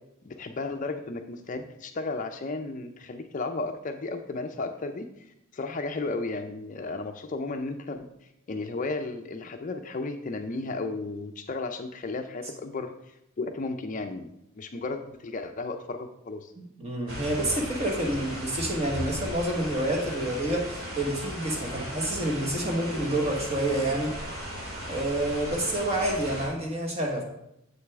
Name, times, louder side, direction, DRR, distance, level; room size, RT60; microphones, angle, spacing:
voice 1, 0.2-5.1 5.5-8.1 8.5-16.5, left 3 dB, 35° left, 6 dB, 0.4 m, -34 dB
voice 2, 16.6-24.1 24.9-27.2, right 1 dB, 30° right, 1 dB, 1.3 m, -28 dB
sound 1, 17.1-26.5, equal, 75° right, 2.0 m, -37 dB
7.5 x 6.4 x 3.5 m, 0.81 s
head